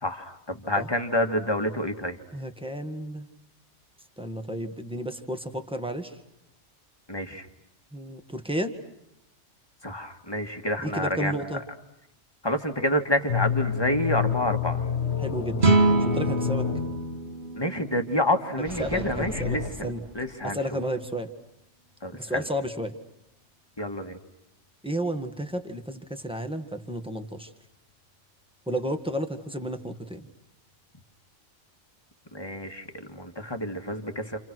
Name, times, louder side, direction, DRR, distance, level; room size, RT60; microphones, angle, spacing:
voice 1, 0.0-2.2 7.1-7.5 9.8-11.3 12.4-14.8 17.5-20.8 22.0-22.5 23.8-24.2 32.3-34.4, left 1 dB, 20° left, 5 dB, 1.9 m, -28 dB
voice 2, 2.3-3.3 4.2-6.2 7.9-8.7 10.8-11.6 15.2-15.7 16.0-16.7 18.8-20.0 20.4-21.3 22.1-23.0 24.8-27.5 28.7-30.3, equal, 5° right, 6 dB, 1.7 m, -32 dB
sound 1, 13.3-17.5 19.2-19.7, left 7 dB, 65° left, 1.6 m, -29 dB
sound 2, 15.6-18.9, right 2 dB, 50° right, 1.9 m, -25 dB
sound 3, 18.6-20.8, right 1 dB, 20° right, 2.2 m, -39 dB
29.5 x 28.5 x 6.2 m, 0.82 s
omnidirectional pair, 1.2 m